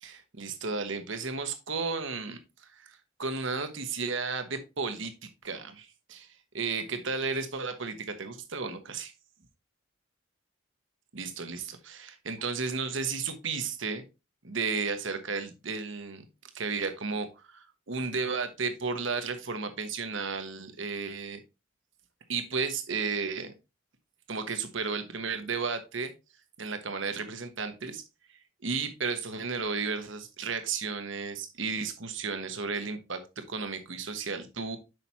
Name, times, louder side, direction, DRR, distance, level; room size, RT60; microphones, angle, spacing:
voice 1, 0.0-2.4 2.7-6.3 6.5-9.1 11.1-14.0 14.4-16.2 16.5-21.4 22.3-23.5 24.3-26.1 26.6-28.0 28.6-34.8, right 4 dB, 65° right, 8 dB, 1.2 m, -33 dB
7.7 x 6.0 x 2.9 m, 0.27 s
head